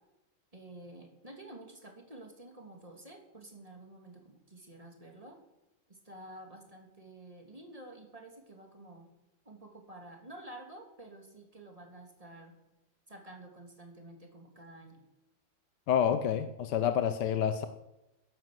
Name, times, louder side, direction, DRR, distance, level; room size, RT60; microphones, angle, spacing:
voice 1, 0.5-5.4 5.9-9.1 9.4-12.6 13.1-15.0, right 1 dB, 20° right, 2 dB, 2.7 m, -50 dB
voice 2, 15.9-17.7, left 9 dB, 80° left, 9 dB, 1.4 m, -28 dB
13.5 x 10.5 x 7.6 m, 0.98 s
omnidirectional pair, 1.9 m